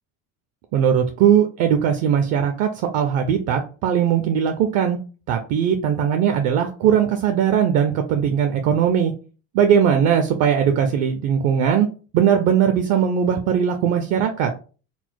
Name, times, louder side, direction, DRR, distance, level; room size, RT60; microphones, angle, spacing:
voice 1, 0.7-5.0 5.3-9.1 9.5-11.9 12.1-14.5, right 8 dB, 45° right, 6 dB, 0.4 m, -19 dB
4.1 x 2.0 x 4.4 m, 0.36 s
cardioid pair, 170°, 38 cm